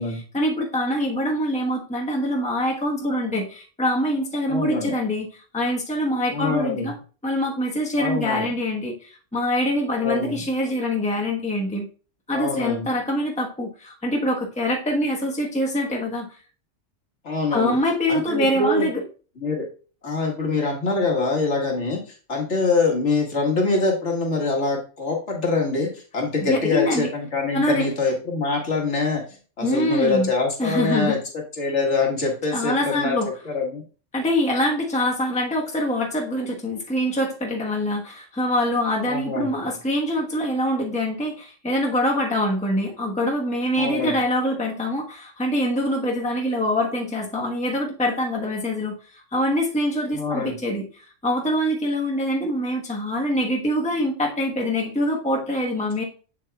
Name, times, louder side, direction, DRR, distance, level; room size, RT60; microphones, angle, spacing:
voice 1, 0.0-5.3 5.5-6.9 7.2-11.9 12.3-16.3 17.5-19.0 26.4-27.1 27.5-27.9 29.6-30.3 30.6-31.2 32.5-33.3 34.1-50.9 51.2-56.0, left 1 dB, 5° left, -1 dB, 1.1 m, -24 dB
voice 2, 4.5-4.9 6.3-6.9 8.0-8.5 10.0-10.4 12.3-12.9 17.2-17.8 18.1-18.9 19.4-19.7 20.0-29.2 29.6-33.2 33.5-33.8 39.1-39.7 43.8-44.2 50.1-50.6, left 3 dB, 65° left, 0 dB, 1.9 m, -24 dB
7.3 x 7.1 x 2.3 m, 0.38 s
omnidirectional pair, 1.3 m